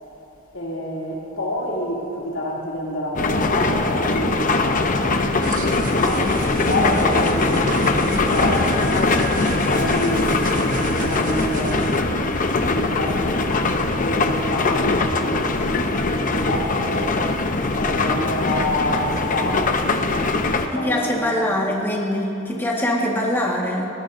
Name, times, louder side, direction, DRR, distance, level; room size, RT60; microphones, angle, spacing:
voice 1, 0.5-5.5 5.9-12.0 12.6-17.2 17.7-21.8, left 1 dB, 80° left, -4 dB, 2.9 m, -28 dB
sound 1, 3.1-20.7, left 3 dB, 40° left, 0.8 m, -21 dB
sound 2, 5.4-12.0, right 4 dB, 45° right, 1.0 m, -35 dB
sound 3, 8.1-15.6, equal, 25° right, 3.6 m, -40 dB
voice 2, 20.7-23.9, left 1 dB, 10° left, -3 dB, 1.7 m, -23 dB
21.0 x 18.5 x 2.7 m, 2.9 s
head